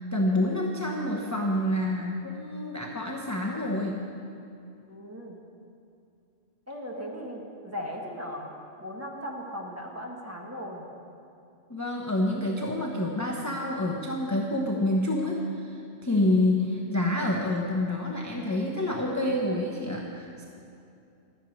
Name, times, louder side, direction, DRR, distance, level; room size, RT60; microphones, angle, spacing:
voice 1, 0.1-4.0 11.7-20.4, left 1 dB, 15° left, -2 dB, 0.9 m, -28 dB
voice 2, 4.9-5.4 6.7-8.5 8.8-10.8, equal, 15° right, -2 dB, 1.5 m, -37 dB
13.5 x 6.7 x 9.1 m, 2.6 s
omnidirectional pair, 1.2 m